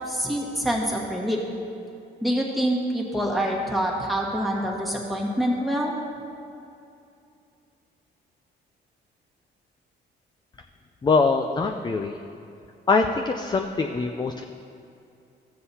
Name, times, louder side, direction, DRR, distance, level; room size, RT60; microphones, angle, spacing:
voice 1, 0.1-1.4 2.2-6.0, equal, ahead, -2 dB, 1.5 m, -26 dB
voice 2, 11.0-12.2 12.9-14.4, left 4 dB, 20° left, 4 dB, 0.4 m, -23 dB
14.0 x 7.7 x 2.8 m, 2.6 s
cardioid pair, 90°, 20 cm